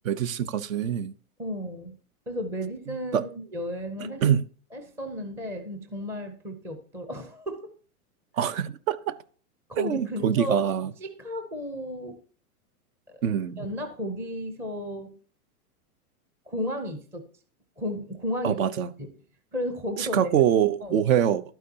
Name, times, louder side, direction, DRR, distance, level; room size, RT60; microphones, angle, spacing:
voice 1, 0.0-1.1 3.1-3.2 4.2-4.4 8.4-9.2 9.8-10.9 13.2-13.7 18.4-18.9 20.0-21.4, right 9 dB, 60° right, 0.8 m, -24 dB
voice 2, 1.4-1.9 2.3-4.2 4.7-7.7 8.4-8.5 9.7-10.6 11.0-12.2 13.1-13.2 13.6-15.1 16.5-17.2 17.8-18.6 19.0-19.1 19.5-20.3 20.8-21.0, left 1 dB, 5° right, 0.5 m, -33 dB
12.0 x 9.2 x 2.8 m
hypercardioid pair, 150°, 45 cm